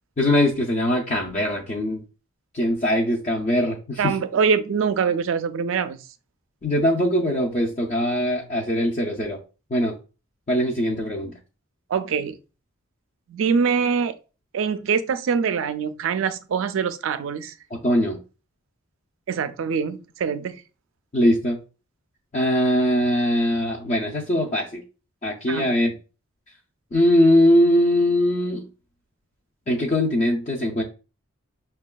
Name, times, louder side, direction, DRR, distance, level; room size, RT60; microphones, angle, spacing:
voice 1, 0.2-2.0 2.5-4.2 6.6-9.4 9.7-9.9 10.5-11.3 17.7-18.2 21.1-21.6 22.3-24.8 25.2-26.0 26.9-28.7 29.7-30.8, left 1 dB, 35° left, 0.4 m, -21 dB
voice 2, 4.0-6.0 11.9-12.4 13.3-14.1 14.5-17.5 19.3-20.6 25.5-25.7, right 6 dB, 65° right, 0.3 m, -24 dB
5.9 x 2.3 x 2.2 m
head